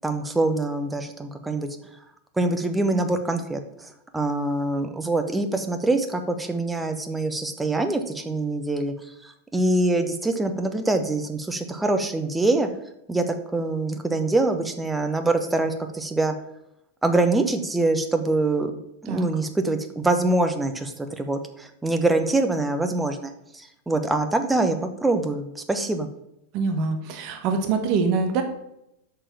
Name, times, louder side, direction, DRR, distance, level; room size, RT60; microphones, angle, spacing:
voice 1, 0.0-1.7 2.4-3.6 4.1-8.9 9.2-12.7 13.1-16.3 17.0-18.7 19.0-26.1, right 2 dB, 10° right, 7 dB, 1.0 m, -24 dB
voice 2, 26.5-28.4, right 4 dB, 40° right, 5 dB, 1.3 m, -24 dB
6.6 x 5.6 x 7.2 m, 0.82 s
figure-of-eight pair, 90°, 0 cm